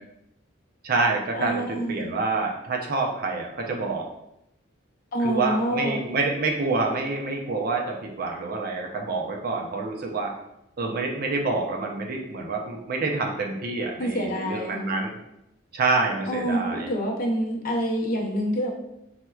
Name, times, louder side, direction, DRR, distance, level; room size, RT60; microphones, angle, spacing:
voice 1, 0.8-4.1 5.2-10.3 10.8-15.2 15.7-16.9, right 3 dB, 50° right, 1 dB, 0.4 m, -27 dB
voice 2, 1.3-2.0 5.1-6.0 14.0-14.8 16.3-18.7, equal, 45° left, -2 dB, 0.6 m, -27 dB
4.3 x 2.1 x 2.3 m, 0.82 s
head